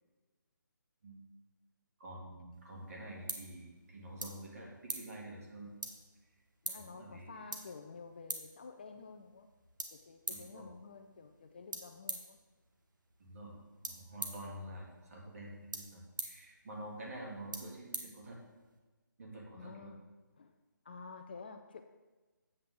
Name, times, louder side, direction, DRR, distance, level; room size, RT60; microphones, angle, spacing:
voice 1, 2.0-5.7 6.7-7.3 10.3-10.7 13.2-13.5 13.8-18.4 19.2-19.9, right 1 dB, 45° right, -1 dB, 2.3 m, -48 dB
sound 1, 2.5-18.8, right 3 dB, 65° right, 1.3 m, -47 dB
voice 2, 6.6-9.5 9.9-12.4 19.6-20.0 20.4-20.5 20.8-21.8, left 4 dB, 30° left, 5 dB, 0.4 m, -50 dB
8.4 x 7.7 x 3.7 m, 1.2 s
figure-of-eight pair, 160°, 11 cm